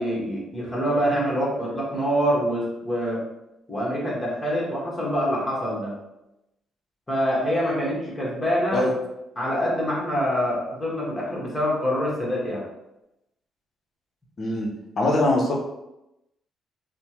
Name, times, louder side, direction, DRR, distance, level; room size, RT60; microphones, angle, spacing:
voice 1, 0.0-3.2 3.7-5.9 7.1-8.8 9.4-12.6, equal, 15° left, -5 dB, 1.2 m, -25 dB
voice 2, 14.4-15.6, left 2 dB, 45° left, 0 dB, 0.7 m, -23 dB
3.2 x 2.1 x 2.9 m, 0.90 s
cardioid pair, 90°, 0 cm